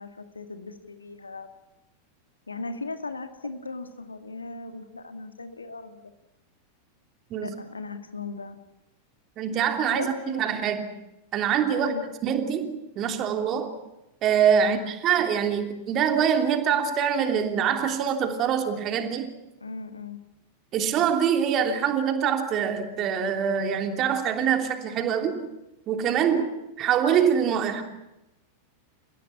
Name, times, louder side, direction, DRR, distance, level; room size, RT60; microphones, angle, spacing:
voice 1, 0.0-1.5 2.5-6.1 7.4-8.6 9.9-10.5 11.8-12.1 14.6-14.9 19.6-20.2 26.3-26.5, left 3 dB, 80° left, 8 dB, 2.0 m, -37 dB
voice 2, 9.4-10.9 11.3-11.9 12.2-13.7 14.2-19.3 20.7-25.4 25.9-26.4 26.8-27.8, right 8 dB, 35° right, 5 dB, 3.1 m, -24 dB
30.0 x 16.5 x 8.4 m, 0.97 s
figure-of-eight pair, 90°, 0 cm